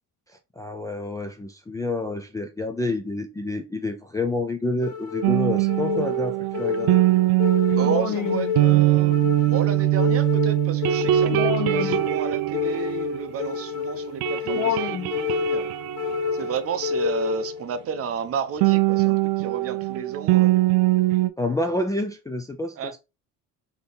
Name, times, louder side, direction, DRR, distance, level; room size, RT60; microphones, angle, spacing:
voice 1, 0.6-7.0 21.4-22.9, left 2 dB, 10° left, 0.4 m, -28 dB
sound 1, 4.8-17.8, left 7 dB, 55° left, 0.9 m, -28 dB
sound 2, 5.2-13.7 14.0-17.4 18.6-21.3, right 18 dB, 80° right, 0.5 m, -22 dB
voice 2, 7.8-15.7 16.3-20.6 22.8-23.0, right 6 dB, 40° right, 0.6 m, -32 dB
3.5 x 2.9 x 3.9 m
cardioid pair, 110°, 36 cm